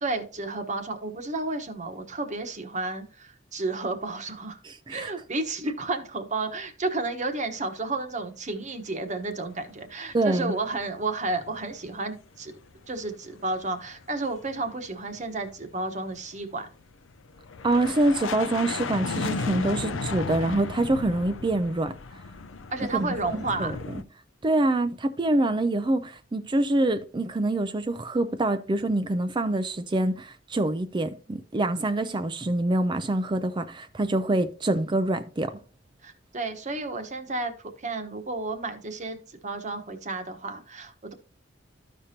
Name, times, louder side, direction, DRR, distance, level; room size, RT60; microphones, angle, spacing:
voice 1, 0.0-4.6 4.9-12.5 12.9-16.7 22.7-23.7 36.0-41.1, right 3 dB, 40° right, 1.1 m, -32 dB
voice 2, 4.6-5.1 10.1-10.5 17.6-21.9 22.9-23.7 24.4-35.5, right 2 dB, 25° right, 0.4 m, -25 dB
sound 1, 9.9-12.0 12.3-24.0, left 4 dB, 85° left, 0.6 m, -35 dB
13.5 x 5.1 x 2.8 m
head